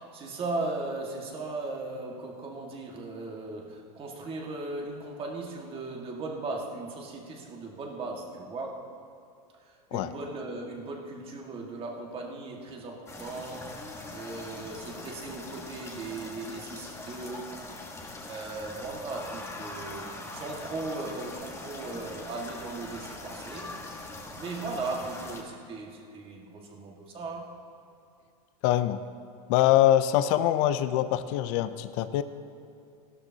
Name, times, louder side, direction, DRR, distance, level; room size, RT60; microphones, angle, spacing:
voice 1, 0.0-8.9 9.6-13.7 14.1-17.6 18.3-23.7 24.1-27.5, right 3 dB, 30° right, 0 dB, 1.9 m, -37 dB
sound 1, 13.0-25.4, left 2 dB, 15° left, 1.5 m, -42 dB
voice 2, 28.6-29.0 29.5-32.2, left 12 dB, 55° left, 12 dB, 0.6 m, -24 dB
16.0 x 12.5 x 2.9 m, 2.6 s
supercardioid pair, 125°, 19 cm